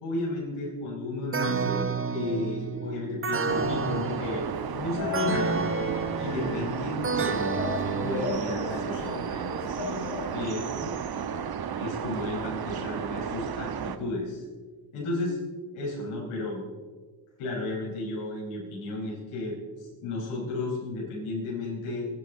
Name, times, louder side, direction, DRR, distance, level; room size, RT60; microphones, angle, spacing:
voice 1, 0.0-5.6 6.2-10.9 11.8-14.4 14.9-15.4 15.7-16.6 17.4-22.1, left 2 dB, 90° left, -4 dB, 4.9 m, -33 dB
sound 1, 1.3-9.0, right 5 dB, 25° right, 1.2 m, -31 dB
sound 2, 3.5-14.0, right 7 dB, 50° right, 1.2 m, -34 dB
sound 3, 3.8-10.8, left 6 dB, 70° left, 2.9 m, -38 dB
27.0 x 10.5 x 3.9 m, 1.5 s
cardioid pair, 75°, 48 cm